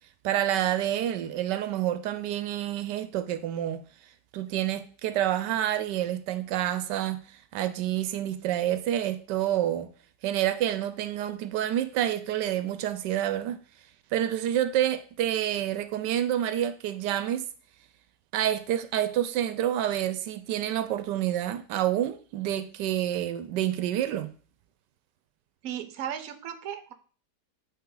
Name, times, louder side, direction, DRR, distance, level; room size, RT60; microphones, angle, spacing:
voice 1, 0.2-3.8 4.3-7.2 7.5-9.9 10.2-13.6 14.1-17.4 18.3-24.3, right 11 dB, 90° right, 1.2 m, -28 dB
voice 2, 25.6-26.9, right 10 dB, 65° right, 1.1 m, -35 dB
8.6 x 3.8 x 3.8 m
omnidirectional pair, 1.8 m